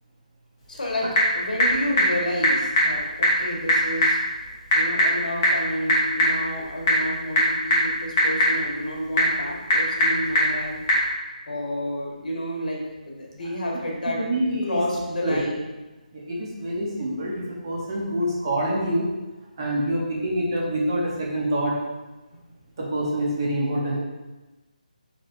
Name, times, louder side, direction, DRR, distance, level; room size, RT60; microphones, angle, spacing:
Typing / Telephone, 0.6-11.1, equal, 20° left, 1.0 m, -23 dB
voice 1, 0.7-4.2 4.7-10.8 11.5-14.2 14.7-15.7, equal, 70° left, -2 dB, 1.5 m, -30 dB
voice 2, 14.2-14.8 15.2-15.4 16.1-19.1 19.6-21.7 22.8-24.0, right 1 dB, 30° right, -4 dB, 1.0 m, -26 dB
4.6 x 4.4 x 2.7 m, 1.1 s
hypercardioid pair, 170°, 5 cm